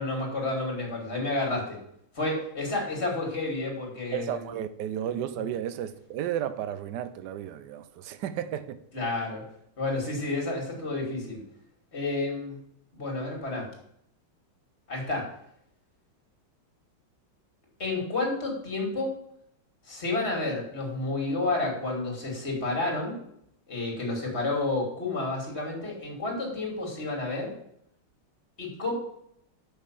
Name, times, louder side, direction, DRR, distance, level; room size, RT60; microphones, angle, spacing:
voice 1, 0.0-1.8 2.1-4.4 5.1-5.2 8.9-9.4 9.8-11.4 11.9-12.6 12.9-13.7 14.9-15.3 17.8-19.1 19.9-23.2 23.7-27.5 28.6-28.9, left 2 dB, 30° left, 0 dB, 2.8 m, -30 dB
voice 2, 4.1-8.8, right 10 dB, 65° right, 12 dB, 1.1 m, -33 dB
6.2 x 6.2 x 7.3 m, 0.72 s
omnidirectional pair, 2.3 m